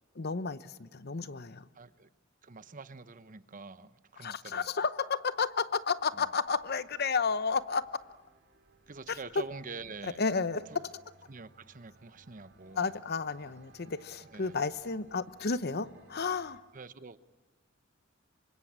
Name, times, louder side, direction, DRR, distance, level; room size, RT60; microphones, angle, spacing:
voice 1, 0.2-1.7 4.2-7.8 9.1-9.2 10.2-10.9 12.7-16.6, left 5 dB, 50° left, 14 dB, 0.9 m, -32 dB
voice 2, 1.7-2.1 2.4-4.7 8.9-10.2 10.7-10.8 11.3-12.9 14.3-14.6 16.7-17.2, right 4 dB, 40° right, 13 dB, 0.9 m, -46 dB
sound 1, 4.7-16.6, right 3 dB, 60° right, 2.9 m, -63 dB
27.0 x 25.0 x 8.8 m, 1.3 s
head